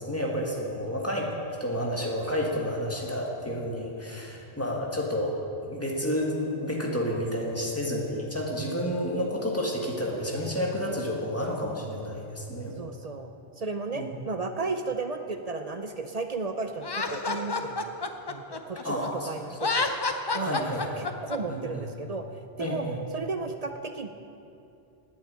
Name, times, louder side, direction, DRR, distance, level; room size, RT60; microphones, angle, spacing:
voice 1, 0.0-5.4 5.6-12.7 14.0-14.1 18.8-19.6 20.4-21.0 21.5-21.9 22.6-23.0, equal, 15° left, -2 dB, 1.7 m, -30 dB
voice 2, 12.8-13.3 13.6-18.0 18.3-19.9 20.3-20.7 21.0-22.2 22.6-22.9 23.1-24.1, right 4 dB, 45° right, 7 dB, 0.6 m, -34 dB
Laughter, 16.8-19.1 19.5-21.4, left 3 dB, 30° left, 0.5 m, -29 dB
10.5 x 8.7 x 8.7 m, 2.7 s
omnidirectional pair, 1.1 m